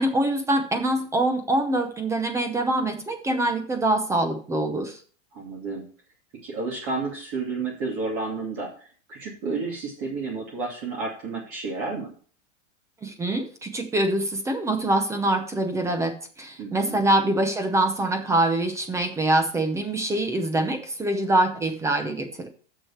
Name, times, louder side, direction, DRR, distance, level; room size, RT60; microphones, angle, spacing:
voice 1, 0.0-5.0 13.0-22.5, right 1 dB, 10° right, 7 dB, 0.7 m, -24 dB
voice 2, 5.3-5.9 6.4-12.1 16.6-17.0, right 3 dB, 35° right, -2 dB, 2.5 m, -31 dB
6.7 x 6.2 x 7.1 m, 0.42 s
supercardioid pair, 160°, 35 cm